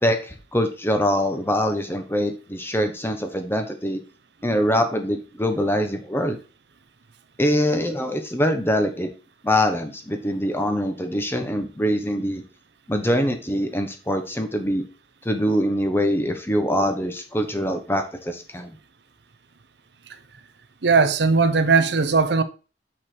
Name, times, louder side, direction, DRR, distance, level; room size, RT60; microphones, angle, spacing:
voice 1, 0.0-4.0 4.4-6.4 7.4-9.1 9.4-12.4 12.9-14.8 15.2-18.7, equal, 15° left, 1.1 m, -23 dB
voice 2, 20.8-22.4, right 4 dB, 65° right, 0.8 m, -18 dB
6.7 x 5.8 x 4.6 m
head